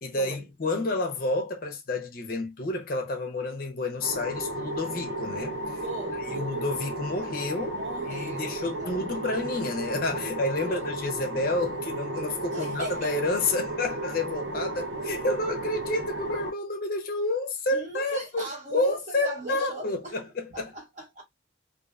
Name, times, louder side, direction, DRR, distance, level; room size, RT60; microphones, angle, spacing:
voice 1, 0.0-5.8 6.2-7.8 8.1-20.7, left 2 dB, 50° left, 0.5 m, -30 dB
sound 1, 4.0-16.5, right 2 dB, 80° right, 0.6 m, -34 dB
voice 2, 5.8-6.6 7.7-9.2 10.6-10.9 12.4-13.1 17.7-20.2 20.5-21.2, right 1 dB, 40° right, 1.1 m, -39 dB
2.5 x 2.1 x 2.3 m
head